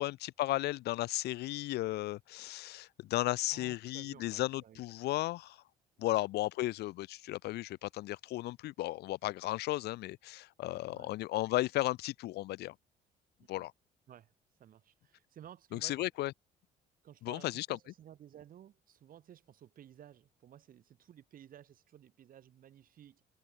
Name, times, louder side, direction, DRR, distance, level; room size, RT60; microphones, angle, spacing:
voice 1, 0.0-5.6 6.0-12.7 13.5-13.7 15.7-16.3 17.2-17.7, left 17 dB, 75° left, 1.0 m, -35 dB
voice 2, 3.5-4.8 6.1-6.2 10.9-11.1 13.4-13.7 14.1-14.3 14.6-16.1 17.0-23.2, right 10 dB, 55° right, 6.4 m, -55 dB
cardioid pair, 110°, 17 cm